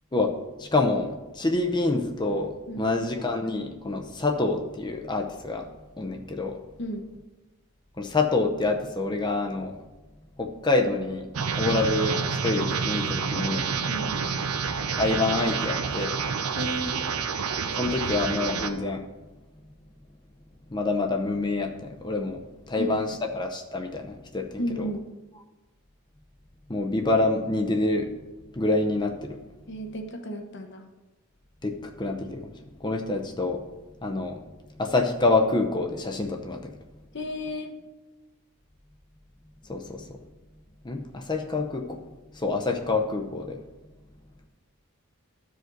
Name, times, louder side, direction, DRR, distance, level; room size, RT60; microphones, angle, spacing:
voice 1, 0.6-5.7 6.0-6.6 8.0-9.8 10.4-11.3 11.6-13.6 14.9-16.2 17.8-19.0 20.7-22.4 22.7-24.9 26.7-28.1 28.5-29.4 31.6-32.5 32.8-33.6 34.0-34.4 34.8-36.7 39.7-40.2 40.8-42.0 42.3-43.6, left 2 dB, 20° left, 3 dB, 0.6 m, -27 dB
sound 1, 11.3-18.7, right 5 dB, 80° right, 0.7 m, -28 dB
voice 2, 16.6-17.0 22.8-22.9 24.6-25.0 29.7-30.8 37.1-37.8, equal, 50° left, 5 dB, 1.0 m, -33 dB
14.0 x 5.1 x 3.9 m, 1.1 s
head